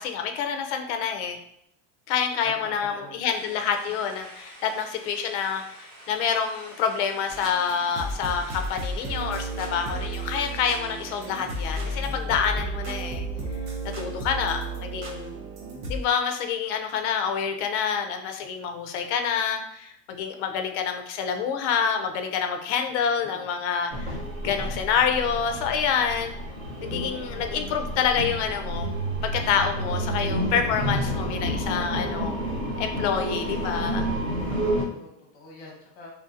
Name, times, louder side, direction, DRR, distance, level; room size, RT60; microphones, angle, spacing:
voice 1, 0.0-1.4 2.1-13.3 14.0-15.3 15.9-24.1 24.4-26.3 26.8-28.9 29.3-32.3 32.8-34.0, left 7 dB, 70° left, 5 dB, 0.5 m, -27 dB
voice 2, 2.4-3.2 14.4-15.1 23.0-23.5 33.8-34.1 34.8-36.1, left 2 dB, 50° left, -2 dB, 1.0 m, -46 dB
sound 1, 3.3-12.0, right 1 dB, 40° right, 1.3 m, -48 dB
sound 2, 7.3-16.0, right 2 dB, 70° right, 0.8 m, -33 dB
sound 3, 23.9-34.8, right 1 dB, 15° right, 0.5 m, -30 dB
3.0 x 2.6 x 2.4 m, 0.75 s
cardioid pair, 175°, 36 cm